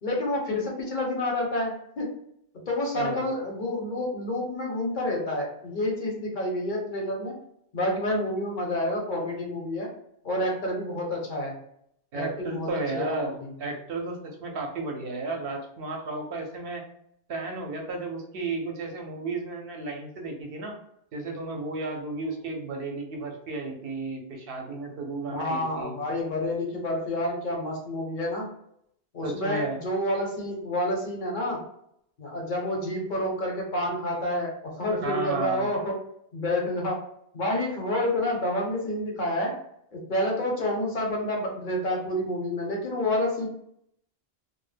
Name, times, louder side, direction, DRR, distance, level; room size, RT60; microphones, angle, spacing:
voice 1, 0.0-2.1 2.7-7.3 7.7-9.9 10.2-11.5 12.1-12.7 12.9-13.5 25.3-28.5 29.1-31.6 32.2-36.0 36.3-37.0 37.3-39.5 39.9-43.5, left 1 dB, 55° left, -1 dB, 0.8 m, -29 dB
voice 2, 2.9-3.3 12.1-16.8 17.3-20.8 21.1-25.9 29.2-29.8 35.0-35.7, right 3 dB, 70° right, 2 dB, 0.8 m, -33 dB
2.1 x 2.1 x 3.2 m, 0.73 s
omnidirectional pair, 1.0 m